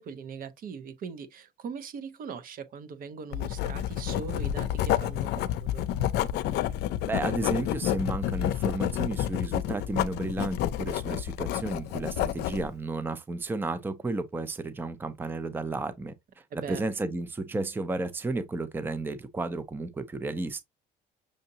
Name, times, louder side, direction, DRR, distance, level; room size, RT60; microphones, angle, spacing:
voice 1, 0.0-5.9 16.5-16.8, right 6 dB, 55° right, 0.7 m, -40 dB
Writing, 3.3-12.7, left 12 dB, 80° left, 0.5 m, -29 dB
voice 2, 7.1-20.6, right 2 dB, 10° right, 0.5 m, -33 dB
6.3 x 2.7 x 2.7 m
cardioid pair, 110°, 17 cm